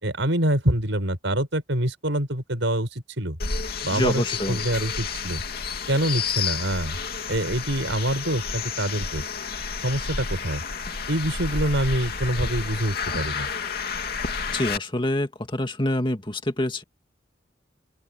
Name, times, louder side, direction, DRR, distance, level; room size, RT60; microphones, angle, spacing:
voice 1, 0.0-3.4 3.8-5.4 5.9-7.0 7.3-9.2 9.8-10.6 11.1-13.5, right 1 dB, 80° right, 5.3 m, -25 dB
sound 1, 3.4-14.8, left 5 dB, 55° left, 2.8 m, -30 dB
voice 2, 3.9-4.6 14.5-16.8, left 1 dB, 25° left, 2.2 m, -26 dB
open air
head